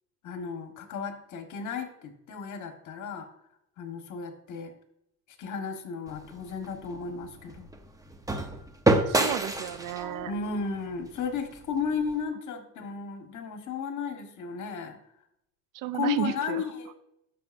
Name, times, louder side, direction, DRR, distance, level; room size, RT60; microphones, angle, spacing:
voice 1, 0.2-3.3 3.8-4.7 5.4-7.7 10.2-15.0 15.9-16.9, left 5 dB, 55° left, 5 dB, 1.5 m, -34 dB
sound 1, 6.1-12.2, right 2 dB, 10° right, 0.8 m, -30 dB
voice 2, 9.1-10.3 15.7-16.6, right 13 dB, 60° right, 15 dB, 0.6 m, -33 dB
12.5 x 6.4 x 2.6 m, 0.80 s
cardioid pair, 110°, 36 cm